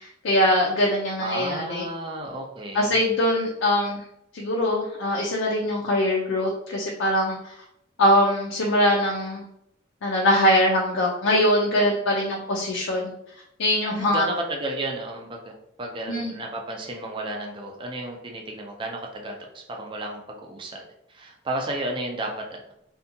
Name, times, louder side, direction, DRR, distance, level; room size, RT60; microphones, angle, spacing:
voice 1, 0.0-1.8 2.7-4.0 4.3-7.5 8.0-9.4 10.0-13.1 13.6-14.3 16.1-16.3, left 1 dB, 80° left, -2 dB, 0.5 m, -22 dB
voice 2, 1.2-2.9 13.9-19.4 19.7-20.8 21.1-22.6, right 1 dB, 25° right, 1 dB, 0.4 m, -32 dB
2.6 x 2.3 x 2.6 m, 0.77 s
head